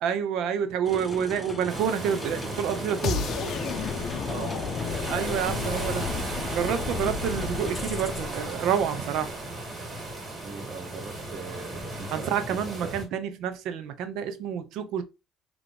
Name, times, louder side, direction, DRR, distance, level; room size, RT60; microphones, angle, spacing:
voice 1, 0.0-3.3 5.1-6.1 6.5-9.4 12.1-15.0, right 8 dB, 75° right, 0.7 m, -28 dB
sound 1, 0.8-8.4, left 2 dB, 15° left, 0.8 m, -39 dB
sound 2, 1.7-13.0, right 2 dB, 25° right, 2.2 m, -35 dB
sound 3, 3.0-9.0, left 6 dB, 60° left, 0.6 m, -33 dB
voice 2, 4.3-4.9 10.4-12.3 12.8-12.9, right 5 dB, 55° right, 1.1 m, -40 dB
4.0 x 3.1 x 3.3 m
cardioid pair, 100°, 0 cm